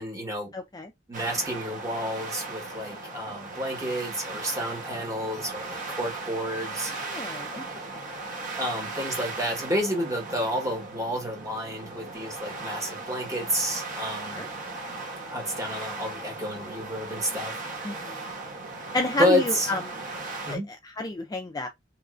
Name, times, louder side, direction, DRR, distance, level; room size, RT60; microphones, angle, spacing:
voice 1, 0.0-0.5 1.1-6.9 8.6-14.4 15.3-17.6 18.0-18.2 19.2-19.8 20.5-20.7, equal, 20° right, 1.2 m, -30 dB
voice 2, 0.5-0.9 7.1-7.6 14.4-14.5 17.8-18.2 18.9-19.8 20.5-20.6 21.0-21.7, left 2 dB, 20° left, 0.3 m, -30 dB
sound 1, 1.1-20.6, right 3 dB, 45° right, 1.0 m, -37 dB
3.0 x 2.5 x 2.4 m
head